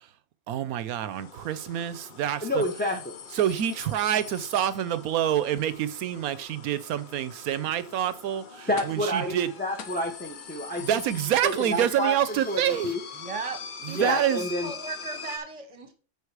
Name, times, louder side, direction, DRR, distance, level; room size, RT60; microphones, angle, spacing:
voice 1, 0.5-2.6 3.3-9.5 10.8-12.9 13.9-14.4, right 11 dB, 75° right, 1.1 m, -27 dB
sound 1, 1.0-15.4, left 6 dB, 45° left, 0.7 m, -44 dB
voice 2, 2.4-3.2 8.7-11.0 11.4-13.0 14.0-14.7, equal, 10° left, 0.8 m, -29 dB
sound 2, 2.6-5.3 8.8-9.2 9.5-9.6 9.8-12.5 12.8-12.9 14.0-14.1, left 7 dB, 80° left, 1.5 m, -45 dB
voice 3, 13.1-13.6 13.8-15.9, right 5 dB, 25° right, 1.1 m, -36 dB
8.4 x 5.0 x 4.8 m
omnidirectional pair, 1.6 m